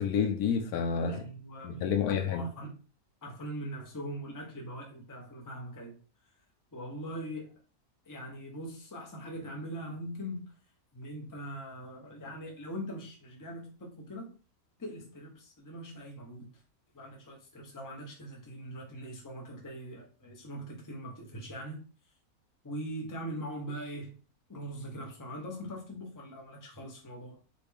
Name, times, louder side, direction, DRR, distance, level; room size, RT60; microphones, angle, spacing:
voice 1, 0.0-1.2 1.6-2.4, left 7 dB, 85° left, 1.2 m, -29 dB
voice 2, 1.1-2.8 3.2-6.0 6.7-7.5 8.1-10.5 10.9-14.3 14.8-16.5 16.9-21.8 22.6-24.2 24.5-27.4, equal, 15° left, 0.8 m, -41 dB
4.1 x 3.3 x 3.5 m
omnidirectional pair, 1.6 m